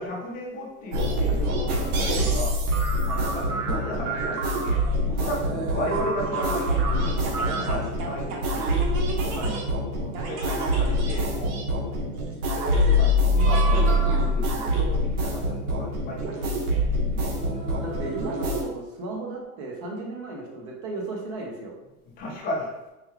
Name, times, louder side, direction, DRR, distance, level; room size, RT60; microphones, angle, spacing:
voice 1, 0.0-2.6 3.3-4.8 5.1-6.9 7.4-8.8 9.9-11.7 12.5-16.5 17.0-17.3 22.2-22.7, left 1 dB, 20° left, -3 dB, 0.6 m, -34 dB
sound 1, 0.9-18.6, equal, 75° right, 1.0 m, -25 dB
voice 2, 9.3-9.7 17.8-21.7, right 2 dB, 25° right, 0 dB, 0.3 m, -35 dB
4.7 x 2.2 x 3.1 m, 1.0 s
supercardioid pair, 145°, 44 cm